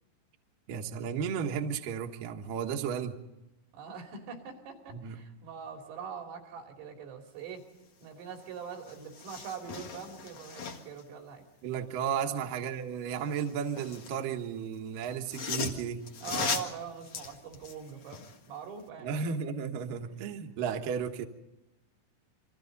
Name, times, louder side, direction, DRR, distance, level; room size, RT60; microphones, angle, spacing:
voice 1, 0.7-3.2 4.9-5.2 11.6-16.0 19.0-21.3, right 7 dB, 65° right, 3 dB, 2.4 m, -34 dB
voice 2, 3.7-7.7 8.0-11.5 12.2-12.4 16.2-19.1, right 7 dB, 85° right, 3 dB, 5.5 m, -43 dB
sound 1, 8.4-8.5 8.8-11.0 13.2-14.2 15.0-18.4 18.8-18.9, left 5 dB, 75° left, 1.3 m, -38 dB
29.0 x 24.5 x 4.0 m, 0.96 s
omnidirectional pair, 5.7 m